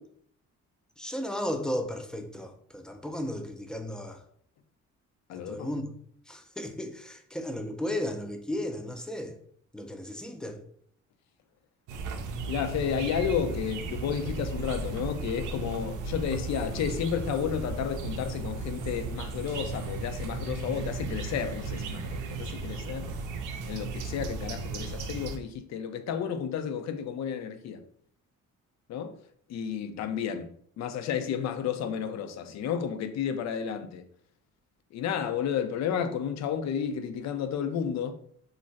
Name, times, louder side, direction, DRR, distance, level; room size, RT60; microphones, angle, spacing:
voice 1, 1.0-4.2 5.3-5.9 6.3-9.4 9.7-10.6, left 1 dB, 5° left, 0.4 m, -34 dB
voice 2, 5.3-5.7 12.5-23.1 23.7-27.8 28.9-29.2 29.5-34.1 34.9-38.2, left 8 dB, 65° left, 0.5 m, -32 dB
sound 1, 11.9-25.4, right 3 dB, 80° right, 0.5 m, -35 dB
2.5 x 2.0 x 3.9 m
cardioid pair, 90°, 30 cm